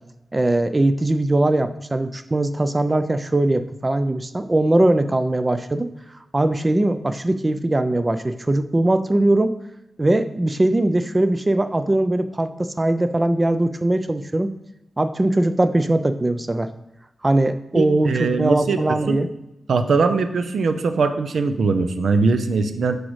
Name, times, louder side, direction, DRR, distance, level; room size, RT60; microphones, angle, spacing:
voice 1, 0.3-5.9 6.3-9.5 10.0-14.5 15.0-16.7 17.2-19.3, right 1 dB, 25° right, 11 dB, 0.3 m, -20 dB
voice 2, 17.7-18.8 19.1-19.2 19.7-23.0, right 4 dB, 80° right, 9 dB, 0.5 m, -21 dB
7.9 x 4.9 x 3.1 m, 0.90 s
cardioid pair, 75°, 0 cm